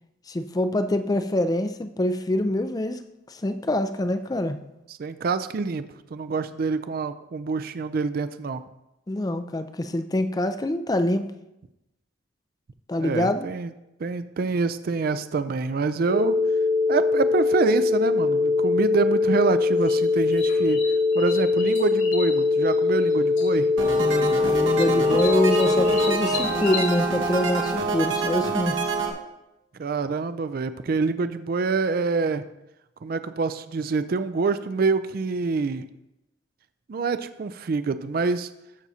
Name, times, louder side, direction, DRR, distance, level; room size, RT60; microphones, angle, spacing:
voice 1, 0.3-3.0 3.3-4.6 9.1-11.3 12.9-13.5 24.0-28.9, left 1 dB, 20° left, 10 dB, 0.4 m, -25 dB
voice 2, 5.0-8.6 13.0-13.7 14.0-16.4 16.9-20.8 21.1-23.7 29.8-32.4 33.0-35.9 36.9-38.5, right 4 dB, 50° right, 12 dB, 0.4 m, -26 dB
sound 1, 16.1-26.1, left 4 dB, 60° left, 1.0 m, -22 dB
sound 2, 19.8-23.1 23.4-23.9 24.2-26.9, left 5 dB, 85° left, 2.7 m, -35 dB
sound 3, 23.8-29.1, right 3 dB, 80° right, 1.3 m, -26 dB
14.0 x 6.1 x 2.8 m, 0.92 s
head